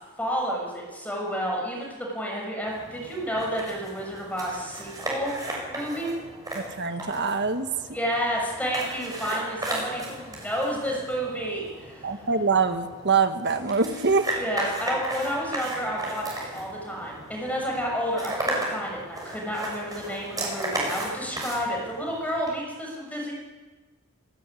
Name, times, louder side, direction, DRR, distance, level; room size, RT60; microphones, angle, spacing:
voice 1, 0.2-5.3 5.7-6.1 7.9-12.1 14.4-23.3, equal, 5° left, -2 dB, 6.5 m, -30 dB
sound 1, 2.7-22.5, right 1 dB, 15° right, 6.7 m, -35 dB
voice 2, 6.5-7.7 9.3-9.4 12.0-14.3, right 4 dB, 50° right, 8 dB, 1.6 m, -24 dB
27.5 x 13.0 x 9.8 m, 1.3 s
head